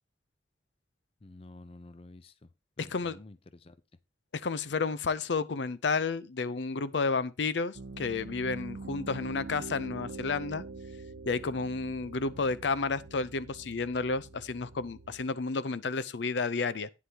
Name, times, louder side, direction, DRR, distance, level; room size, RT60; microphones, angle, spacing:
voice 1, 1.2-2.5 2.8-3.8, left 2 dB, 30° left, 0.5 m, -50 dB
voice 2, 2.8-3.2 4.3-10.6 11.3-16.9, left 4 dB, 80° left, 0.6 m, -31 dB
Piano, 7.7-15.2, right 3 dB, 70° right, 0.5 m, -44 dB
11.5 x 9.5 x 2.9 m
head